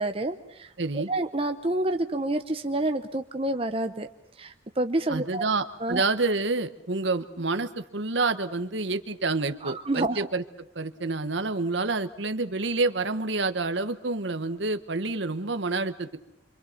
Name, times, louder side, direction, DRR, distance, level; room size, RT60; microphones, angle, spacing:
voice 1, 0.0-4.1 4.4-5.5 5.8-6.0 9.6-10.3, right 2 dB, 30° right, 7 dB, 0.8 m, -28 dB
voice 2, 0.8-1.1 5.1-10.4 10.7-16.2, right 3 dB, 65° right, 9 dB, 1.2 m, -28 dB
26.5 x 25.5 x 5.9 m, 0.82 s
head